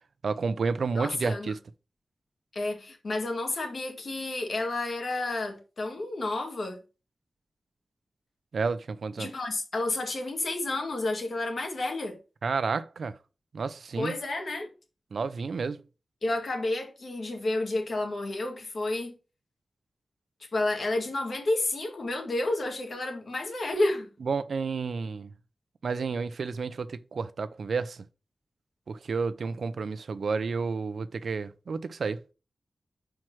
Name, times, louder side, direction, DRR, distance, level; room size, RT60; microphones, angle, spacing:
voice 1, 0.2-1.6 8.5-9.3 12.4-13.2 13.5-14.2 15.1-15.8 24.2-25.3 25.8-28.0 28.9-32.2, right 4 dB, 75° right, 0.6 m, -31 dB
voice 2, 1.0-1.5 2.5-6.8 9.2-12.2 14.0-14.7 16.2-19.2 20.5-24.1, left 2 dB, 60° left, 1.9 m, -30 dB
6.0 x 4.6 x 6.1 m
wide cardioid pair, 135°, 0 cm